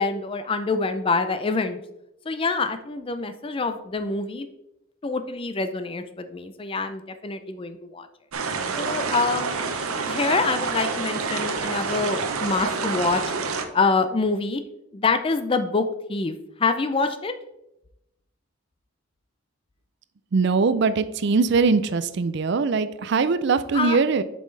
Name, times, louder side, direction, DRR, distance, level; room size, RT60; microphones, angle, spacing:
voice 1, 0.0-1.8 2.3-4.5 5.0-8.1 8.8-9.6 10.1-13.2 13.7-14.6 14.9-16.3 16.6-17.3 23.7-24.0, left 4 dB, 25° left, 9 dB, 0.4 m, -25 dB
sound 1, 8.3-13.6, right 4 dB, 90° right, 0.8 m, -28 dB
voice 2, 20.3-24.2, right 4 dB, 55° right, 13 dB, 0.4 m, -21 dB
7.3 x 5.4 x 3.2 m, 0.85 s
head